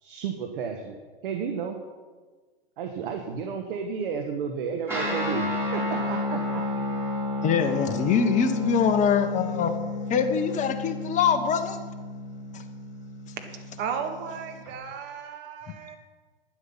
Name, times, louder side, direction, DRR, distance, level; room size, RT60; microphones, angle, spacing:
voice 1, 0.0-1.8 2.8-6.6, right 6 dB, 60° right, 4 dB, 1.4 m, -32 dB
Guitar, 4.9-14.7, left 2 dB, 10° right, 4.7 m, -32 dB
voice 2, 7.4-9.7 10.1-11.8 12.5-12.6, left 7 dB, 25° left, 7 dB, 1.2 m, -23 dB
voice 3, 13.8-16.0, right 7 dB, 35° right, 5 dB, 1.8 m, -34 dB
11.5 x 9.7 x 5.7 m, 1.4 s
hypercardioid pair, 115°, 30 cm